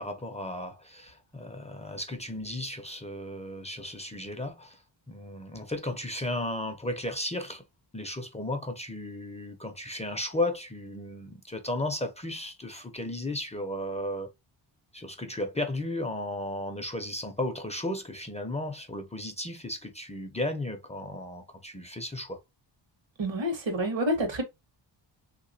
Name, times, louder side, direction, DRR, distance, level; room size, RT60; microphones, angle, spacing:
voice 1, 0.0-4.8 5.1-7.6 7.9-14.3 14.9-22.4, left 1 dB, 15° left, 0.4 m, -34 dB
voice 2, 23.2-24.4, equal, 85° right, 1.4 m, -28 dB
3.5 x 2.9 x 2.6 m
wide cardioid pair, 180°, 45 cm